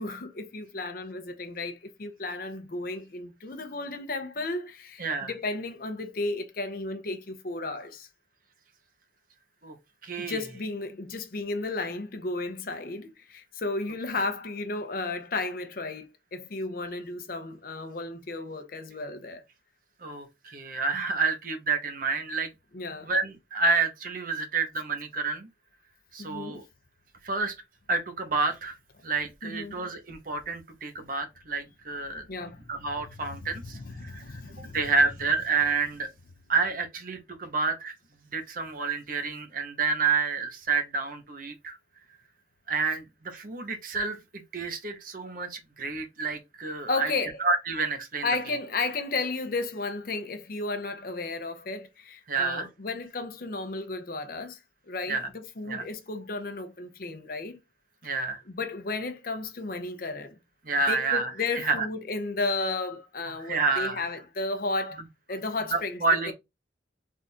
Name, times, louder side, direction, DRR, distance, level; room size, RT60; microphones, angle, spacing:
voice 1, 0.0-8.1 10.2-19.4 22.7-23.1 26.2-26.6 29.4-29.7 32.3-32.6 33.0-34.8 46.9-47.4 48.2-54.6 54.9-57.6 58.1-60.4 60.9-65.0 65.3-66.3, left 3 dB, 50° left, 0.6 m, -33 dB
voice 2, 5.0-5.3 9.6-9.7 10.0-10.4 20.0-22.5 23.0-25.5 26.1-26.6 27.2-27.5 27.9-28.8 29.0-32.3 32.7-34.4 34.7-36.1 36.5-37.9 38.3-41.8 42.7-47.1 47.4-48.3 52.3-52.7 55.1-55.3 55.7-55.8 58.0-58.4 60.6-61.9 63.4-64.0 65.7-66.3, right 4 dB, 50° right, 0.9 m, -29 dB
3.6 x 2.5 x 4.3 m
head